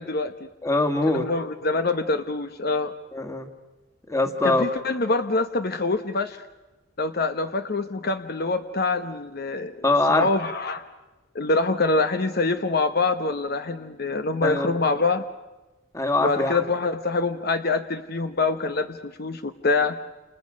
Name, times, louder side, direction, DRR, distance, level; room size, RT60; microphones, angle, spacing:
voice 1, 0.0-0.5 1.1-2.9 4.4-6.4 7.0-9.8 10.1-10.8 11.3-15.2 16.2-20.0, left 3 dB, 55° left, 9 dB, 1.0 m, -25 dB
voice 2, 0.6-1.3 3.1-3.5 4.1-4.6 9.8-10.3 14.4-14.8 15.9-16.6, left 2 dB, 15° left, 8 dB, 2.0 m, -23 dB
29.0 x 28.5 x 6.4 m, 1.1 s
head